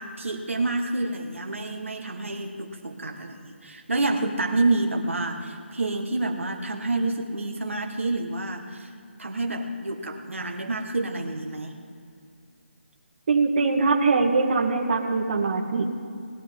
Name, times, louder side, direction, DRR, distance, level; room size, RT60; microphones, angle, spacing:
voice 1, 0.0-8.9 9.2-11.7, right 2 dB, 85° right, 2 dB, 1.5 m, -28 dB
voice 2, 13.3-15.9, right 4 dB, 45° right, 1 dB, 1.6 m, -22 dB
19.5 x 11.0 x 3.8 m, 2.4 s
figure-of-eight pair, 155°, 7 cm